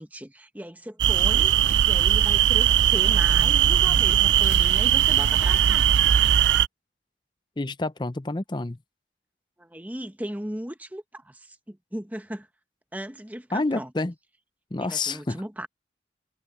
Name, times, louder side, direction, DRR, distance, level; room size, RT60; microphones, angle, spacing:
voice 1, 0.0-1.5 1.8-5.9 9.6-12.5 12.9-13.9 14.8-15.7, right 1 dB, 10° right, 1.2 m, -37 dB
sound 1, 1.0-6.7, right 10 dB, 85° right, 0.4 m, -19 dB
voice 2, 7.6-8.8 13.5-14.1 14.7-15.4, left 2 dB, 25° left, 0.6 m, -28 dB
head